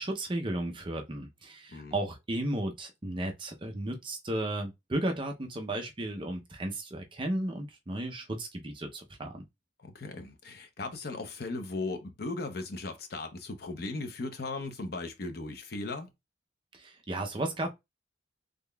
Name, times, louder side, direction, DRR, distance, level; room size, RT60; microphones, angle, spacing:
voice 1, 0.0-9.5 16.7-17.7, right 1 dB, 25° right, 0.5 m, -34 dB
voice 2, 9.8-16.1, left 3 dB, 55° left, 0.7 m, -37 dB
3.7 x 3.4 x 2.2 m
head